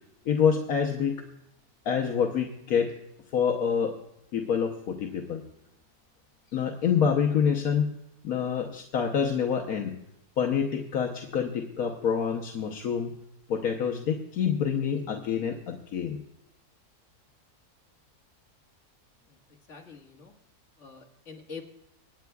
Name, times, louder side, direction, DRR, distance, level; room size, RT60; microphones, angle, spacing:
voice 1, 0.2-1.3 1.8-2.9 3.3-4.0 4.3-5.4 6.5-8.0 8.2-10.0 10.4-13.2 13.5-16.2, left 7 dB, 75° left, 2 dB, 1.4 m, -27 dB
voice 2, 19.7-20.3 20.8-21.6, left 5 dB, 55° left, 1 dB, 2.1 m, -45 dB
25.5 x 9.4 x 2.3 m, 0.86 s
omnidirectional pair, 1.6 m